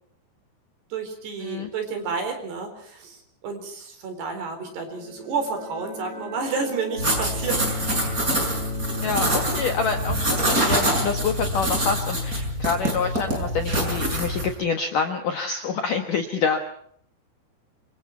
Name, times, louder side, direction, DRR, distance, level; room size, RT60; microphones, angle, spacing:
voice 1, 0.9-7.8 8.2-8.4, right 4 dB, 60° right, 5 dB, 6.1 m, -31 dB
sound 1, 4.7-13.2, right 1 dB, 35° right, 4.5 m, -40 dB
sound 2, 7.0-14.5, equal, 15° right, 6.0 m, -25 dB
voice 2, 9.0-16.6, left 5 dB, 65° left, 5 dB, 2.2 m, -27 dB
27.0 x 25.0 x 4.6 m, 0.64 s
omnidirectional pair, 5.7 m